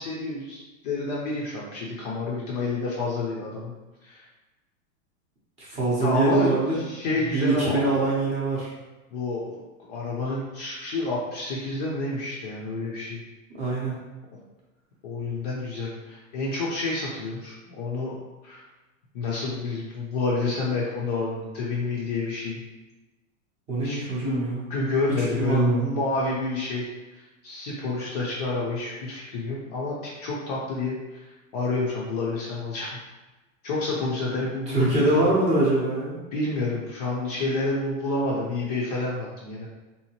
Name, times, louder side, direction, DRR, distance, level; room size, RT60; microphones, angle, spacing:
voice 1, 0.0-3.7 4.0-4.2 6.0-7.9 9.1-9.6 9.9-13.2 15.0-18.1 18.4-18.6 19.1-22.6 23.8-24.4 24.7-32.9 33.6-35.3 36.3-39.7, left 3 dB, 30° left, -4 dB, 0.4 m, -29 dB
voice 2, 5.6-6.7 7.3-8.7 13.5-14.0 23.7-24.6 25.4-25.9 34.7-36.2, right 2 dB, 15° right, -6 dB, 0.6 m, -23 dB
3.7 x 2.8 x 2.8 m, 1.1 s
supercardioid pair, 160°, 40 cm